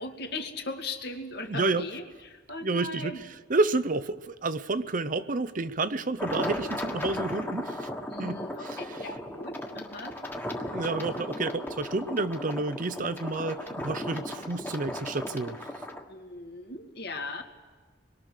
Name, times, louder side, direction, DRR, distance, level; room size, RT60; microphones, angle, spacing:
voice 1, 0.0-3.2 8.1-10.2 16.1-17.4, left 3 dB, 60° left, 4 dB, 2.1 m, -38 dB
voice 2, 1.5-1.9 2.6-7.9 8.2-9.1 10.7-15.7, right 3 dB, 45° right, 13 dB, 0.7 m, -30 dB
sound 1, 6.2-16.0, left 1 dB, 10° left, 1.5 m, -36 dB
25.5 x 22.0 x 6.6 m, 1.4 s
head